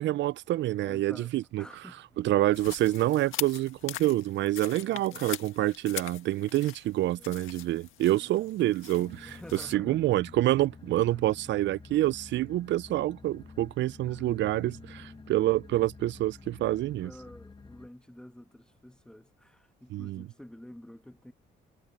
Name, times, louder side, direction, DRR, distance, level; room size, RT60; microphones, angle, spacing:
voice 1, 0.0-1.6 2.2-9.4 9.7-17.1 19.9-20.2, right 15 dB, 65° right, 0.4 m, -27 dB
voice 2, 0.8-2.2 2.6-2.8 4.8-5.3 7.0-7.4 8.1-8.5 9.3-10.2 14.1-14.4 16.8-21.3, left 1 dB, 5° left, 2.1 m, -50 dB
sound 1, 2.5-9.7, left 13 dB, 85° left, 1.7 m, -42 dB
sound 2, 8.9-17.9, left 4 dB, 25° left, 1.3 m, -49 dB
cardioid pair, 90°, 20 cm